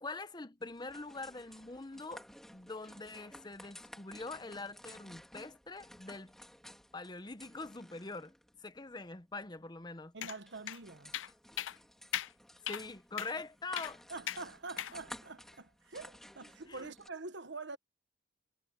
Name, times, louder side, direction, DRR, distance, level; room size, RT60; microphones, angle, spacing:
voice 1, 0.0-2.2 2.5-6.3 6.9-8.3 8.6-10.1 12.7-14.0 16.7-16.9, left 3 dB, 20° left, 0.8 m, -44 dB
sound 1, 0.6-17.1, equal, ahead, 3.3 m, -55 dB
voice 2, 10.1-11.1 14.1-17.8, right 3 dB, 65° right, 1.2 m, -45 dB
sound 2, 10.2-10.4 10.7-10.8 11.1-11.3 11.6-11.8 12.1-12.3 12.7-12.8 13.2-13.3 13.8-13.9 14.3-14.4 14.8-14.9, left 11 dB, 90° left, 0.5 m, -38 dB
head